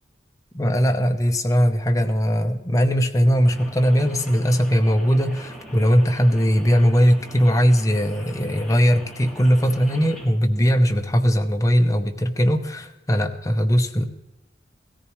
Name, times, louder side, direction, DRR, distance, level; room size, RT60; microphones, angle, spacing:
voice 1, 0.5-14.1, equal, 20° left, 5 dB, 0.8 m, -19 dB
Rain, 3.4-10.3, equal, ahead, 2.4 m, -42 dB
16.5 x 14.0 x 3.1 m, 0.96 s
head